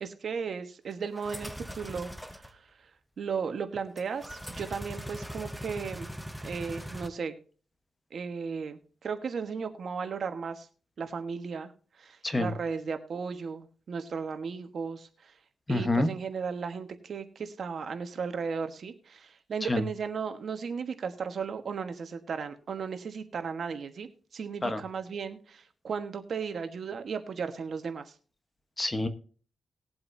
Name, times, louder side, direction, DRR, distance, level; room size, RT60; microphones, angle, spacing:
voice 1, 0.0-2.6 3.2-6.1 6.4-7.3 8.1-10.7 11.0-11.7 12.0-15.3 15.7-28.1, right 5 dB, 60° right, 8 dB, 1.3 m, -35 dB
sound 1, 1.1-2.5 4.0-7.1, equal, ahead, 0.7 m, -41 dB
voice 2, 15.7-16.1 19.7-19.8 24.6-24.8 28.8-29.1, left 2 dB, 20° left, 9 dB, 1.1 m, -27 dB
20.0 x 7.8 x 2.7 m, 0.41 s
wide cardioid pair, 110°, 0 cm